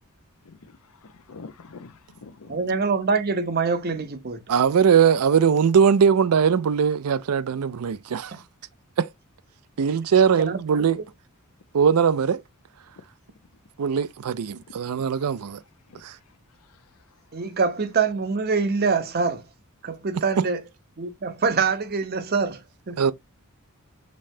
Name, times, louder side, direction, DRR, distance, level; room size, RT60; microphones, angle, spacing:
voice 1, 0.6-2.8 13.0-13.1 14.7-14.8 15.9-16.0 16.7-16.8, left 4 dB, 85° left, 0.7 m, -45 dB
voice 2, 2.5-4.4 8.3-8.4 10.4-10.6 17.3-19.4 19.8-20.6 21.0-23.0, right 4 dB, 45° right, 0.7 m, -25 dB
voice 3, 4.5-8.3 9.0-9.1 9.8-11.0 11.7-12.4 13.8-15.6 16.0-16.1 20.4-20.5 23.0-23.1, right 7 dB, 90° right, 0.4 m, -20 dB
5.4 x 3.3 x 2.6 m
head